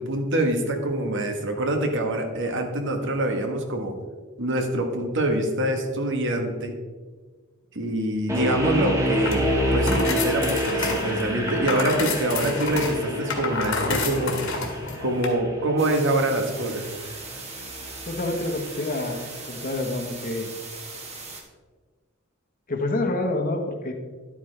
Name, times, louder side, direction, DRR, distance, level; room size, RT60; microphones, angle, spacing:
voice 1, 0.0-4.0 4.4-6.8 7.7-14.4 15.0-16.9, right 1 dB, 60° right, 4 dB, 1.3 m, -25 dB
sound 1, 8.3-19.3, equal, 15° right, 1.6 m, -29 dB
sound 2, 9.2-15.3, left 4 dB, 65° left, 1.8 m, -30 dB
sound 3, 15.8-21.4, right 4 dB, 30° right, 1.4 m, -39 dB
voice 2, 18.1-19.2 19.5-20.5 22.7-23.9, left 2 dB, 40° left, 4 dB, 1.1 m, -27 dB
11.0 x 8.6 x 3.3 m, 1.4 s
head